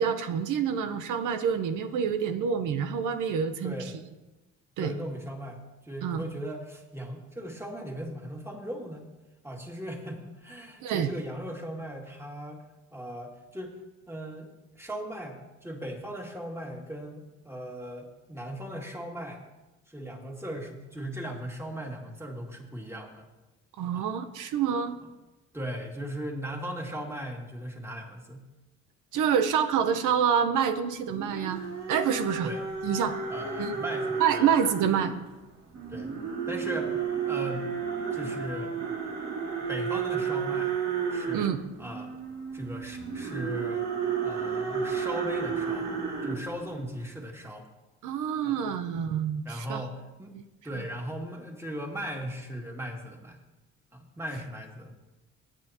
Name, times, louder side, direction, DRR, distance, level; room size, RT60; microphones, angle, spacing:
voice 1, 0.0-3.7 4.8-4.9 6.0-6.2 10.8-11.1 23.8-25.0 29.1-31.6 31.9-32.5 32.8-33.2 33.6-33.7 34.2-35.1 41.3-41.6 48.0-49.8, right 7 dB, 85° right, 9 dB, 0.8 m, -27 dB
voice 2, 3.6-3.9 4.8-9.1 9.4-12.6 12.9-13.8 14.1-14.5 14.8-19.4 19.9-23.2 23.9-24.1 25.5-28.4 32.4-32.8 33.3-34.5 35.9-36.2 36.5-37.7 38.1-38.7 39.7-40.7 41.1-41.5 41.8-42.2 42.5-43.9 44.2-45.9 46.2-47.7 48.4-48.6 49.4-50.4 50.6-53.4 53.9-55.0, equal, 10° right, 0 dB, 2.3 m, -38 dB
sound 1, 31.1-35.1 35.7-46.9, right 6 dB, 60° right, 2.5 m, -32 dB
17.5 x 9.2 x 2.9 m, 1.1 s
cardioid pair, 90°, 30 cm